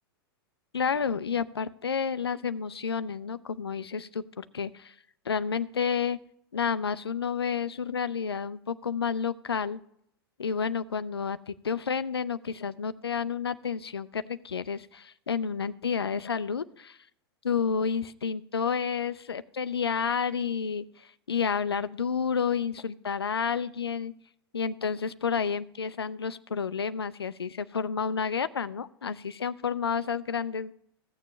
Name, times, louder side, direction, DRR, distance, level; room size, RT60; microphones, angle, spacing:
voice 1, 0.7-4.9 5.3-6.2 6.5-9.8 10.4-17.0 17.4-24.1 24.5-30.7, left 6 dB, 90° left, 14 dB, 0.4 m, -30 dB
15.5 x 6.9 x 3.2 m, 0.71 s
hypercardioid pair, 95°, 13 cm